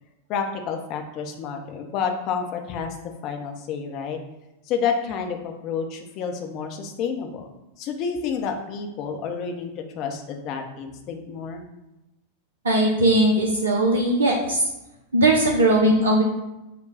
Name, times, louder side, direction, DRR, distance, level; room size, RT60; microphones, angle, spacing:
voice 1, 0.3-3.0 3.2-4.2 4.7-7.4 7.8-11.6, left 6 dB, 40° left, 4 dB, 0.7 m, -29 dB
voice 2, 12.6-14.6 15.1-16.2, right 1 dB, 70° right, -1 dB, 0.6 m, -19 dB
4.9 x 2.2 x 4.8 m, 0.97 s
figure-of-eight pair, 90°, 0 cm